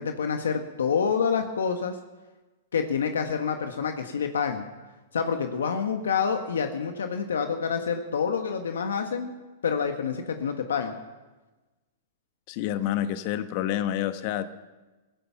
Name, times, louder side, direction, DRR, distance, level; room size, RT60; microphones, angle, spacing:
voice 1, 0.0-2.0 2.7-4.6 5.1-9.3 9.6-10.9, left 6 dB, 85° left, 6 dB, 1.3 m, -27 dB
voice 2, 12.5-14.5, left 11 dB, 50° left, 10 dB, 1.2 m, -28 dB
16.0 x 15.0 x 5.9 m, 1.2 s
hypercardioid pair, 125°, 0 cm